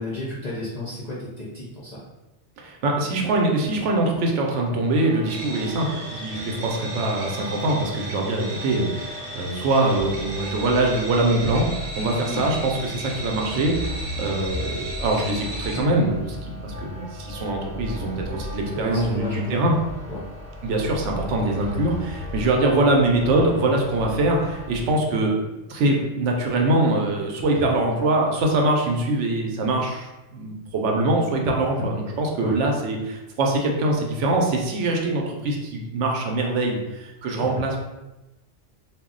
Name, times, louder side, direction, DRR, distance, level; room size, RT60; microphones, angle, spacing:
voice 1, 0.0-2.0 12.2-12.4 18.7-19.6 20.1-20.3 27.5-27.7 32.4-32.6 37.4-37.6, left 2 dB, 50° left, -7 dB, 0.5 m, -32 dB
voice 2, 2.6-19.8 20.6-25.3 25.7-37.8, right 2 dB, 75° right, 0 dB, 0.9 m, -23 dB
sound 1, 4.9-24.8, left 1 dB, 5° right, 0.6 m, -37 dB
sound 2, 5.3-15.8, right 2 dB, 50° right, 0.5 m, -36 dB
2.3 x 2.1 x 3.7 m, 1.0 s
omnidirectional pair, 1.3 m